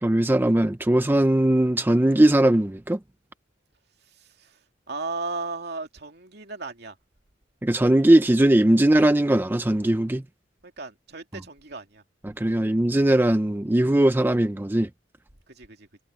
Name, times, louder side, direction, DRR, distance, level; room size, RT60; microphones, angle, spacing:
voice 1, 0.0-3.0 7.6-10.2 12.2-14.9, right 1 dB, 10° right, 0.4 m, -20 dB
voice 2, 4.2-4.6 4.9-7.0 10.6-12.0 15.5-15.9, right 3 dB, 60° right, 2.6 m, -35 dB
head